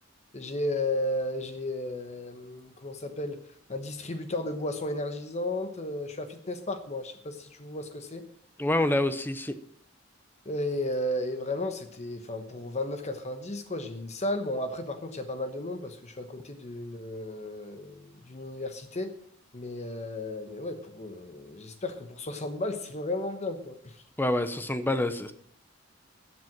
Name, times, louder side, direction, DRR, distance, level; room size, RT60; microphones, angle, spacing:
voice 1, 0.3-3.4 3.7-8.2 10.4-19.1 19.5-24.0, left 1 dB, 35° left, 8 dB, 1.1 m, -34 dB
voice 2, 8.6-9.6 24.2-25.3, left 1 dB, 10° left, 11 dB, 0.6 m, -27 dB
14.0 x 7.7 x 7.3 m, 0.65 s
head